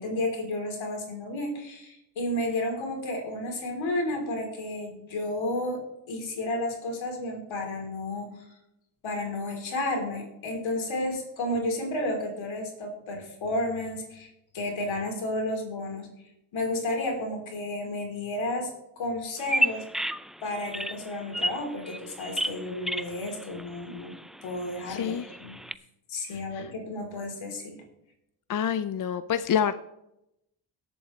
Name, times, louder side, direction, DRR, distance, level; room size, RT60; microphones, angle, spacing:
voice 1, 0.0-5.8 6.1-8.3 9.0-16.1 16.5-18.7 19.0-19.8 20.4-24.2 24.4-25.1 25.4-25.6 26.1-27.8, left 1 dB, 75° left, 1 dB, 3.5 m, -32 dB
Bird vocalization bird call bird song, 19.4-25.7, right 1 dB, ahead, 0.4 m, -33 dB
voice 2, 24.9-25.3 26.3-26.7 28.5-29.7, left 8 dB, 45° left, 12 dB, 0.6 m, -28 dB
17.5 x 8.0 x 3.2 m, 0.84 s
supercardioid pair, 60°, 47 cm